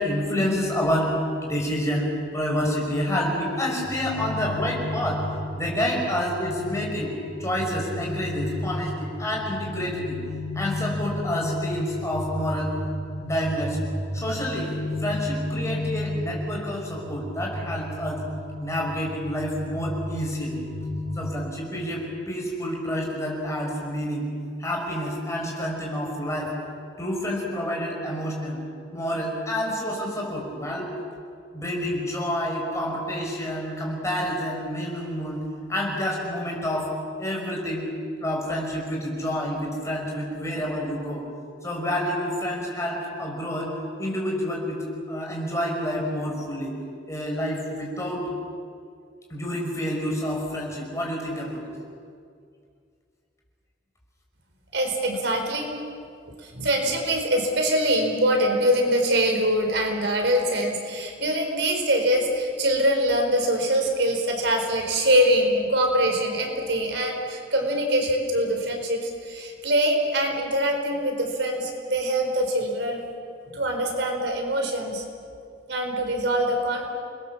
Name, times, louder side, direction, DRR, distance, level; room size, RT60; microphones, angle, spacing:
voice 1, 0.0-5.2 5.5-7.1 7.4-10.2 10.5-12.7 13.2-13.8 14.1-14.7 15.0-18.2 18.6-20.6 21.2-24.3 24.6-26.5 27.0-28.6 28.9-30.9 31.5-35.4 35.7-36.9 37.2-37.9 38.2-41.2 41.6-43.7 44.0-46.8 47.1-48.3 49.3-51.6, equal, 15° left, -2 dB, 5.7 m, -28 dB
sound 1, 3.8-21.3, left 1 dB, 60° left, 5.5 m, -33 dB
voice 2, 54.7-55.7 56.4-73.0 73.5-75.0 75.7-76.9, right 1 dB, 70° right, 3 dB, 4.3 m, -23 dB
29.0 x 21.5 x 7.2 m, 2.3 s
head